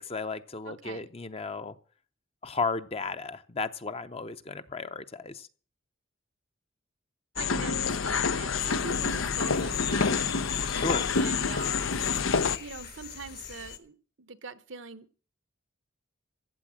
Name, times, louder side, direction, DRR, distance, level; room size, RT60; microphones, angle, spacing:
voice 1, 0.0-1.7 2.4-5.5 10.7-11.1, left 4 dB, 30° left, 0.7 m, -34 dB
voice 2, 0.7-1.1 7.3-10.2 11.1-11.8 12.6-15.1, right 4 dB, 65° right, 0.9 m, -42 dB
sound 1, 7.4-12.6, left 5 dB, 85° left, 0.7 m, -27 dB
sound 2, 8.6-13.8, left 7 dB, 55° left, 1.4 m, -42 dB
15.0 x 8.1 x 7.5 m
head